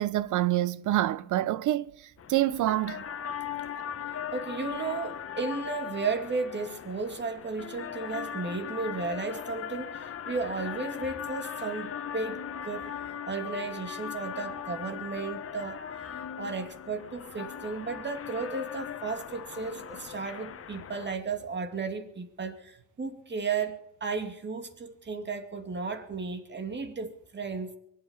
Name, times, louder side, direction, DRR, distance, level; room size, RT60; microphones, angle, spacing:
voice 1, 0.0-1.9 2.3-3.0, right 14 dB, 80° right, 0.8 m, -26 dB
sound 1, 2.2-21.2, left 8 dB, 50° left, 1.2 m, -39 dB
voice 2, 4.1-27.8, right 4 dB, 35° right, 2.5 m, -34 dB
23.5 x 8.7 x 7.0 m
cardioid pair, 90°, 30 cm